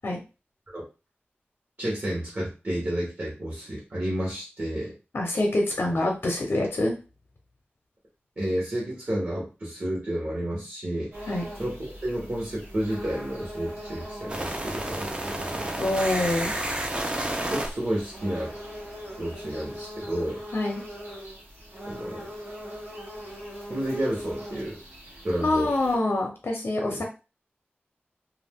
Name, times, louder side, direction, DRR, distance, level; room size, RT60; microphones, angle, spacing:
voice 1, 1.8-4.9 8.4-15.7 17.1-18.5 19.2-20.4 21.8-22.3 23.7-24.8 25.2-25.7 26.8-27.0, right 1 dB, 50° right, -4 dB, 1.0 m, -31 dB
voice 2, 5.1-7.0 11.3-11.5 15.8-16.5 20.5-20.8 25.4-27.0, left 2 dB, 60° left, 1 dB, 0.7 m, -25 dB
sound 1, 11.1-26.0, equal, 75° right, 1.1 m, -41 dB
sound 2, 14.3-19.1, right 1 dB, 25° right, 0.5 m, -32 dB
2.4 x 2.2 x 3.5 m, 0.31 s
wide cardioid pair, 80°, 4 cm